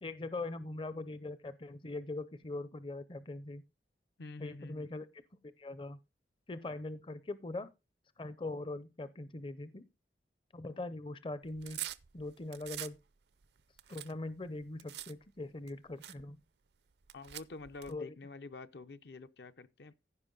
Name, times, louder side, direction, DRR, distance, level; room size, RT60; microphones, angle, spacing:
voice 1, 0.0-3.6 4.4-5.1 5.6-6.0 6.5-7.7 8.2-9.8 10.5-11.8 12.1-13.0 13.9-16.4 17.9-18.1, left 2 dB, 30° left, 0.5 m, -41 dB
voice 2, 4.2-4.9 17.1-20.0, left 3 dB, 70° left, 0.6 m, -48 dB
sound 1, 11.4-13.0 13.4-15.1 15.7-15.8 16.0-16.2 17.0-17.9, right 14 dB, 70° right, 0.5 m, -44 dB
15.5 x 5.2 x 3.8 m
head